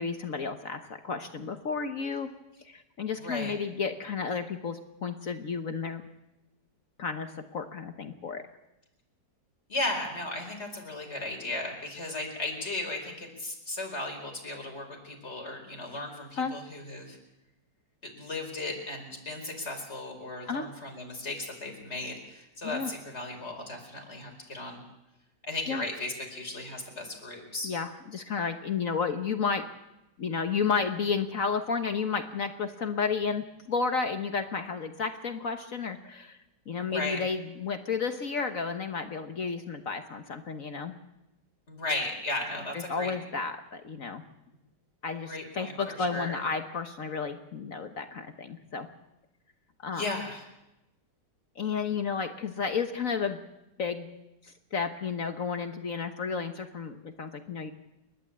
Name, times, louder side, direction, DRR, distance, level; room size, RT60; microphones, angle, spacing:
voice 1, 0.0-2.3 2.6-6.0 7.0-8.4 16.4-16.5 20.5-20.7 22.6-22.9 25.7-25.8 27.6-29.6 30.2-36.4 36.7-40.9 42.7-44.2 45.0-48.9 49.8-50.1 51.6-53.4 53.8-54.1 54.4-57.7, left 5 dB, 50° left, 7 dB, 1.4 m, -32 dB
voice 2, 3.2-3.5 9.7-17.2 18.0-24.8 25.4-27.7 36.8-37.2 41.7-43.1 45.2-46.4 49.9-50.4, left 2 dB, 35° left, 2 dB, 4.9 m, -36 dB
29.5 x 12.0 x 8.6 m, 0.94 s
omnidirectional pair, 1.9 m